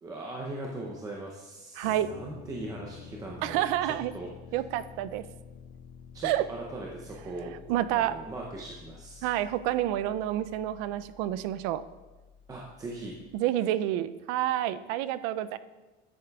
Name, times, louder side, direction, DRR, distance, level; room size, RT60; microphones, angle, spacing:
voice 1, 0.0-4.3 6.1-7.5 7.9-9.3 12.5-13.1, right 2 dB, 15° right, -2 dB, 0.6 m, -40 dB
sound 1, 1.8-13.4, left 6 dB, 60° left, 0.5 m, -50 dB
voice 2, 1.8-2.1 3.4-4.1 4.5-5.2 6.2-6.4 7.7-8.1 9.2-11.8 13.3-15.6, right 13 dB, 70° right, 15 dB, 0.4 m, -28 dB
9.9 x 8.5 x 2.3 m, 1.2 s
cardioid pair, 165°, 21 cm